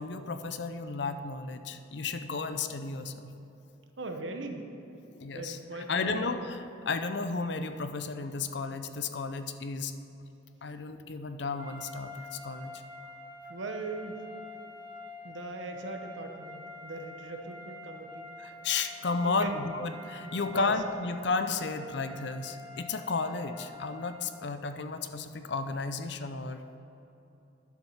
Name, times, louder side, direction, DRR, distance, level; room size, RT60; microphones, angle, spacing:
voice 1, 0.0-3.3 5.1-9.9 10.6-12.7 18.4-26.8, left 4 dB, 60° left, 9 dB, 0.6 m, -33 dB
voice 2, 4.0-4.7 5.3-6.3 13.5-14.2 15.2-18.3 19.2-19.6 20.5-20.7, right 3 dB, 70° right, 4 dB, 1.0 m, -39 dB
sound 1, 11.6-24.4, left 2 dB, 20° right, 1.2 m, -47 dB
11.0 x 7.5 x 5.6 m, 3.0 s
head